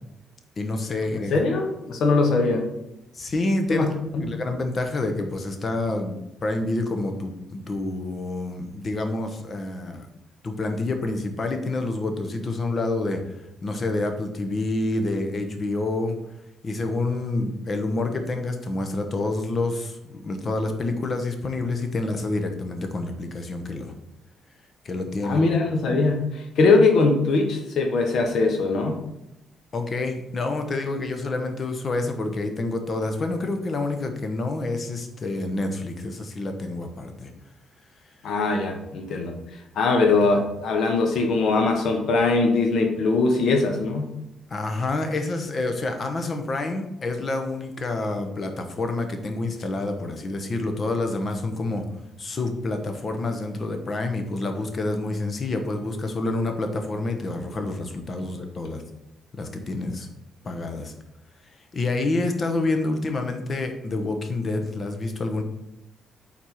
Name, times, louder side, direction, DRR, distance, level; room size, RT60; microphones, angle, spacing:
voice 1, 0.6-1.3 3.1-3.9 4.2-10.1 10.4-13.2 13.6-16.2 16.6-23.9 24.8-25.4 29.7-37.3 44.5-51.8 52.2-58.8 59.3-60.1 60.4-60.9 61.7-65.4, left 2 dB, 40° left, 5 dB, 1.0 m, -28 dB
voice 2, 1.3-2.6 3.7-3.9 4.1-4.3 25.2-29.0 38.2-39.3 39.7-44.1, left 3 dB, 70° left, 3 dB, 1.1 m, -21 dB
4.6 x 4.2 x 5.7 m, 0.88 s
cardioid pair, 90°, 0 cm